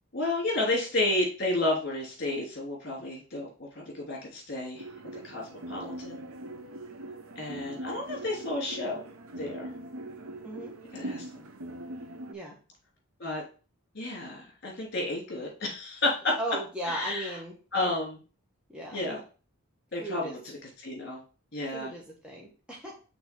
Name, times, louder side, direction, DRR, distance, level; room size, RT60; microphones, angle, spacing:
voice 1, 0.1-4.8 5.2-6.2 7.4-9.0 9.4-9.7 10.9-11.2 13.2-13.4 13.9-16.3 16.9-17.3 17.7-18.2 18.9-19.2 19.9-21.2 21.5-21.9, left 2 dB, 45° left, -2 dB, 2.9 m, -31 dB
sound 1, 4.8-12.3, right 1 dB, 75° right, 0.8 m, -41 dB
voice 2, 16.4-17.6 18.7-19.0 20.0-20.4 21.7-22.9, right 1 dB, 5° right, -3 dB, 1.3 m, -37 dB
6.0 x 3.6 x 5.2 m, 0.36 s
head